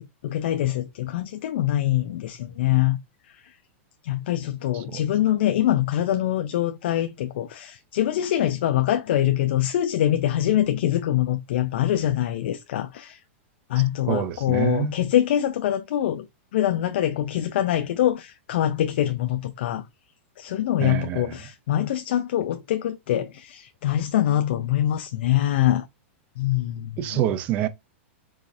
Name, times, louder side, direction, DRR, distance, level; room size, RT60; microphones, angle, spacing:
voice 1, 0.0-3.0 4.0-13.2 13.7-16.3 16.5-19.8 20.4-25.9 26.4-27.2, left 12 dB, 55° left, 0.4 m, -24 dB
voice 2, 14.1-14.9 20.8-21.4 27.0-27.7, right 11 dB, 20° right, 0.3 m, -26 dB
4.7 x 2.8 x 2.5 m
supercardioid pair, 180°, 7 cm